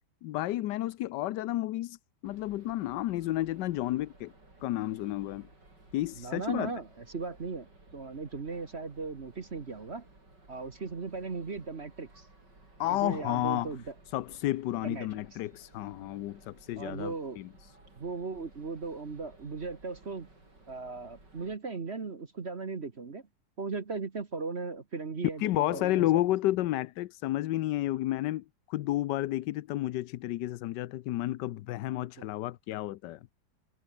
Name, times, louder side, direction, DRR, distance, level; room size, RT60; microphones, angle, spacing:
voice 1, 0.2-2.0 2.2-4.3 4.6-5.5 5.9-6.7 12.8-13.7 14.1-17.5 25.4-33.2, left 15 dB, 80° left, 1.3 m, -31 dB
sound 1, 2.2-21.6, right 2 dB, 80° right, 7.9 m, -57 dB
voice 2, 6.2-7.7 7.9-10.1 10.5-12.3 12.9-13.9 14.8-15.2 16.8-17.4 18.0-20.3 20.7-23.2 23.6-26.2 31.8-32.3, right 4 dB, 40° right, 1.7 m, -37 dB
omnidirectional pair, 1.9 m